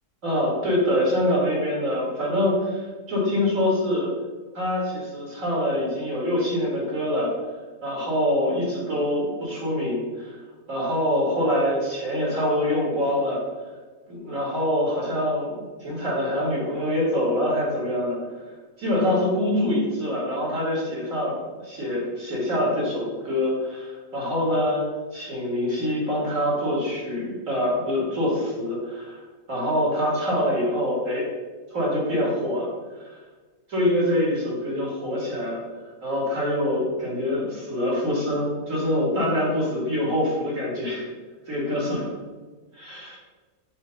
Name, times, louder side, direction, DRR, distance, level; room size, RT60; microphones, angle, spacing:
voice 1, 0.2-4.1 4.5-7.3 7.8-10.4 10.7-13.4 14.1-18.2 18.8-24.8 25.1-29.2 29.5-31.2 31.7-32.7 33.0-33.1 33.7-35.6 36.0-41.0 41.5-42.1 42.7-43.2, left 1 dB, 55° right, -4 dB, 2.5 m, -25 dB
7.4 x 3.2 x 5.3 m, 1.3 s
omnidirectional pair, 1.7 m